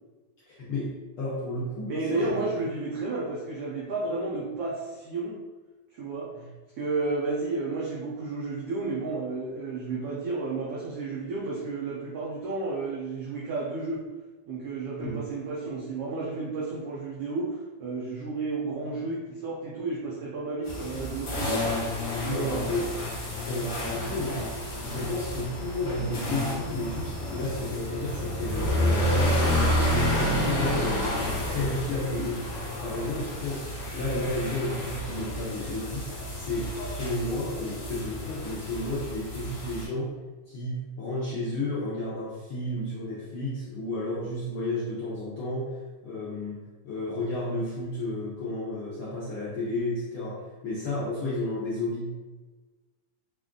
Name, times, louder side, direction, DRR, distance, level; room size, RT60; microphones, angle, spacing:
voice 1, 0.5-2.4 6.3-6.5 15.0-15.2 22.0-23.0 23.5-24.5 24.8-29.3 29.7-31.2 31.5-36.0 36.3-40.1 40.5-52.1, left 2 dB, 75° left, -8 dB, 1.2 m, -32 dB
voice 2, 1.9-5.4 5.9-6.3 6.8-14.1 14.5-21.9 22.2-22.6 25.0-25.1, right 3 dB, 85° right, -4 dB, 1.3 m, -32 dB
sound 1, 20.6-39.8, left 1 dB, 45° left, 1.5 m, -30 dB
5.3 x 2.4 x 3.7 m, 1.3 s
omnidirectional pair, 3.5 m